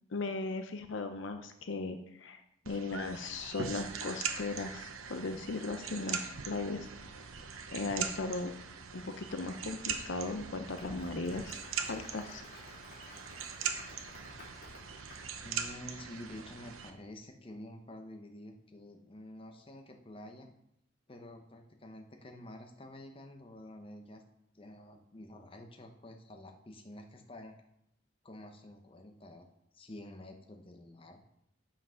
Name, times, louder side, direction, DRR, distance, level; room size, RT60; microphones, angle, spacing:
voice 1, 0.1-2.4 2.7-6.9 7.7-8.5 8.9-11.6 11.9-12.4, left 3 dB, 60° left, 7 dB, 0.6 m, -37 dB
sound 1, 2.7-16.9, right 6 dB, 80° right, 0.8 m, -41 dB
Applause, 10.4-15.5, left 2 dB, 40° left, 3.3 m, -54 dB
voice 2, 15.4-20.5 21.1-24.2 24.5-27.6 28.2-29.5 29.7-31.2, left 1 dB, 25° left, 4 dB, 0.8 m, -49 dB
7.5 x 5.8 x 5.7 m, 0.79 s
head